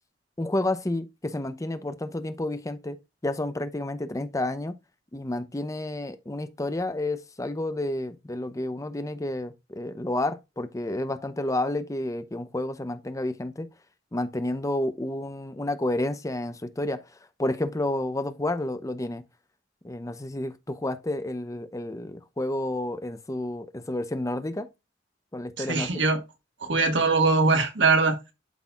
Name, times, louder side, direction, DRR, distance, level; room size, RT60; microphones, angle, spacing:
voice 1, 0.4-3.0 3.2-4.7 5.1-13.7 14.1-17.0 17.4-19.2 19.8-24.7 25.3-26.1, left 1 dB, 20° left, 0.7 m, -30 dB
voice 2, 25.6-26.2 26.6-28.2, right 3 dB, 85° right, 1.7 m, -22 dB
12.0 x 4.0 x 2.4 m
head